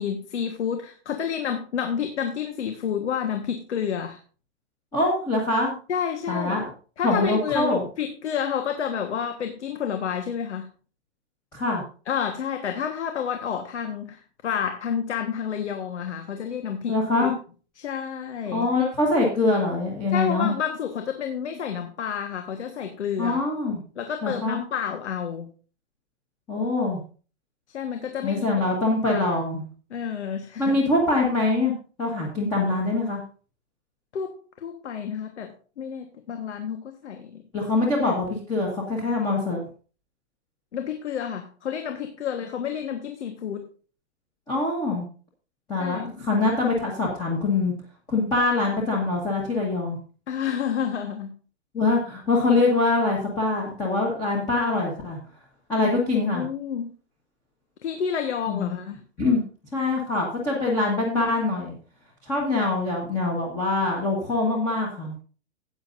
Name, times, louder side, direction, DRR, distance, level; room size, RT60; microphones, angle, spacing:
voice 1, 0.0-4.2 5.9-6.7 7.0-10.7 12.1-16.9 17.2-17.3 17.8-18.7 20.1-23.4 24.0-25.5 27.7-28.5 29.0-29.4 29.9-30.8 34.1-37.4 40.7-43.6 45.8-46.3 50.3-51.3 55.8-55.9 56.2-56.9 57.8-59.0, left 8 dB, 80° left, 6 dB, 1.4 m, -30 dB
voice 2, 4.9-5.7 6.3-6.7 7.0-7.8 11.5-11.8 16.9-17.3 18.5-20.5 23.2-23.8 24.2-24.6 26.5-27.0 28.2-29.6 30.6-31.7 32.0-33.2 37.5-39.6 44.5-45.1 45.7-47.7 48.1-50.0 51.7-55.2 55.7-56.4 58.5-58.8 59.2-59.4 59.7-61.7 62.2-65.2, left 2 dB, 10° left, -3 dB, 1.4 m, -24 dB
13.5 x 9.0 x 2.6 m, 0.38 s
hypercardioid pair, 175°, 34 cm